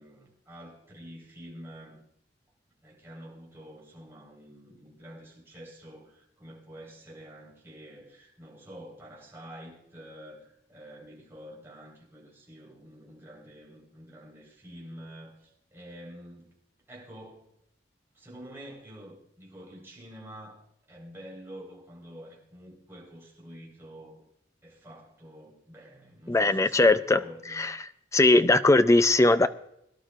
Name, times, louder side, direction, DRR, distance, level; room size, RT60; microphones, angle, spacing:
voice 1, 0.0-2.0 2.8-16.6 16.9-17.4 18.1-24.2 24.6-27.7, equal, 15° right, -3 dB, 4.3 m, -48 dB
voice 2, 26.3-27.2 27.5-27.7 28.1-29.5, left 2 dB, 15° left, 12 dB, 0.4 m, -20 dB
22.0 x 11.5 x 2.5 m, 0.75 s
head